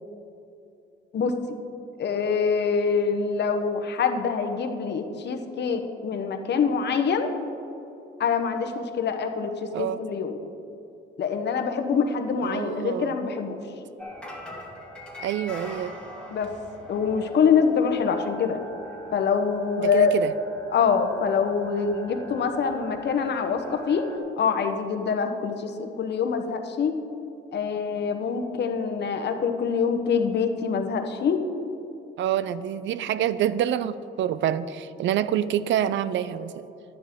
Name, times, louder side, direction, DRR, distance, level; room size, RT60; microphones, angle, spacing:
voice 1, 2.0-7.3 8.2-10.4 11.2-13.6 16.3-16.5 16.9-18.6 19.1-20.1 20.7-24.1 24.4-26.9 27.5-31.4, left 6 dB, 60° left, 6 dB, 1.0 m, -25 dB
voice 2, 12.4-13.2 15.2-15.9 19.8-20.3 32.2-36.7, right 10 dB, 70° right, 15 dB, 0.4 m, -27 dB
sound 1, 14.0-24.2, left 1 dB, 5° left, 1.7 m, -42 dB
11.0 x 9.7 x 3.7 m, 2.9 s
cardioid pair, 90°, 20 cm